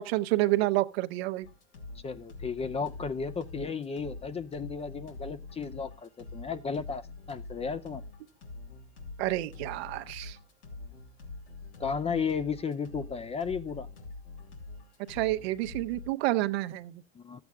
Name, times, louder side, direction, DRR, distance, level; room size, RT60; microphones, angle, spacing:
voice 1, 0.0-1.5 9.2-10.4 15.1-17.0, right 17 dB, 65° right, 0.9 m, -29 dB
sound 1, 1.4-16.1, left 3 dB, 85° left, 3.0 m, -45 dB
voice 2, 2.0-7.0 7.3-8.0 11.8-13.9 17.1-17.4, left 5 dB, 20° left, 0.6 m, -34 dB
13.5 x 7.9 x 3.5 m
hypercardioid pair, 95°, 34 cm